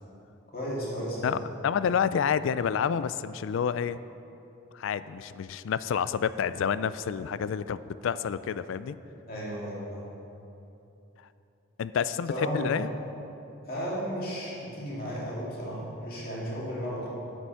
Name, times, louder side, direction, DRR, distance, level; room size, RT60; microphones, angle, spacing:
voice 1, 0.5-1.4 9.3-10.0 12.3-12.8 13.6-17.1, equal, 45° left, -7 dB, 2.6 m, -34 dB
voice 2, 1.2-4.0 4.7-9.0 11.8-12.9, left 7 dB, 70° left, 15 dB, 0.3 m, -29 dB
8.8 x 7.8 x 5.7 m, 2.9 s
head